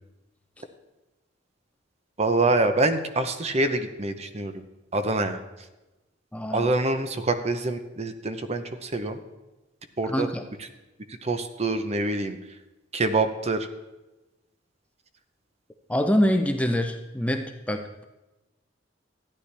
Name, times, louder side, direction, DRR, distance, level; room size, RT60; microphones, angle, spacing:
voice 1, 2.2-4.6 4.9-5.4 6.5-9.2 10.0-10.3 11.2-12.4 12.9-13.7, right 2 dB, 35° right, 9 dB, 0.7 m, -25 dB
voice 2, 6.3-6.7 10.1-10.5 15.9-18.0, equal, 5° left, 6 dB, 0.5 m, -25 dB
13.5 x 9.8 x 3.3 m, 1.1 s
head